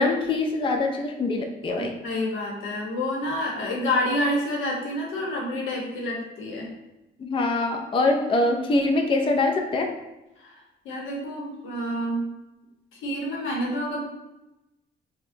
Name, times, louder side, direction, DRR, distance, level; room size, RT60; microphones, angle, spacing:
voice 1, 0.0-1.9 7.2-9.9, left 2 dB, 25° left, 3 dB, 0.4 m, -23 dB
voice 2, 1.8-6.7 10.4-10.6 10.8-12.2 12.9-14.0, left 1 dB, 85° left, -1 dB, 0.9 m, -28 dB
4.3 x 2.2 x 2.7 m, 0.96 s
cardioid pair, 90°, 20 cm